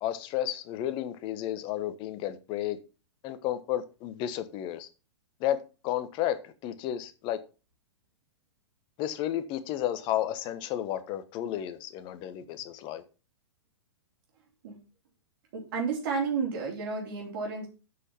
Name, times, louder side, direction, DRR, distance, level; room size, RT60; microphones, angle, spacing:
voice 1, 0.0-2.8 3.2-4.9 5.4-5.6 5.8-7.4 9.0-13.0, left 12 dB, 35° left, 1.2 m, -32 dB
voice 2, 15.5-17.7, right 5 dB, 50° right, 3.4 m, -31 dB
8.1 x 6.1 x 5.6 m
figure-of-eight pair, 110°, 15 cm